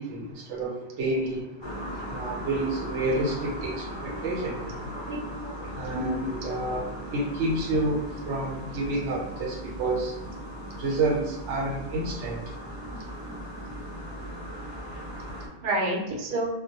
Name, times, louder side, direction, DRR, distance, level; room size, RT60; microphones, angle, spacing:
voice 1, 0.0-1.5 2.1-4.8 5.7-6.8 7.1-10.1 10.8-12.4, right 2 dB, 90° right, -1 dB, 1.0 m, -29 dB
sound 1, 1.6-15.5, equal, 35° left, 0.5 m, -38 dB
voice 2, 4.9-6.5 15.6-16.5, right 1 dB, 55° right, -2 dB, 0.7 m, -30 dB
2.1 x 2.0 x 2.8 m, 0.93 s
omnidirectional pair, 1.2 m